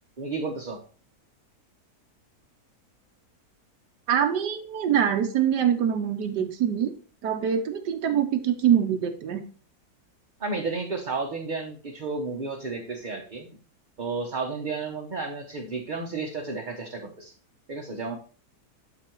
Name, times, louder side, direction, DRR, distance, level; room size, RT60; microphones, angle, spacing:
voice 1, 0.2-0.8 10.4-13.5 14.0-17.3 17.7-18.1, right 4 dB, 35° right, 1 dB, 1.0 m, -32 dB
voice 2, 4.1-6.9 7.2-9.4, right 9 dB, 85° right, 6 dB, 1.5 m, -24 dB
11.5 x 4.0 x 4.5 m, 0.40 s
omnidirectional pair, 1.8 m